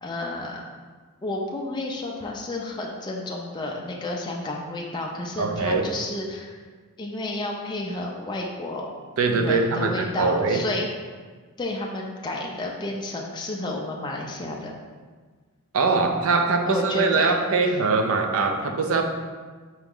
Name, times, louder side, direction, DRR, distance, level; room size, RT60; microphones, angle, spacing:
voice 1, 0.0-0.6 1.2-6.6 7.0-8.9 9.3-10.9 11.6-14.7 16.7-17.3, left 2 dB, 20° left, -1 dB, 0.4 m, -31 dB
voice 2, 5.4-5.9 9.2-10.6 15.7-19.0, right 4 dB, 65° right, 4 dB, 0.5 m, -22 dB
4.6 x 3.0 x 3.7 m, 1.5 s
head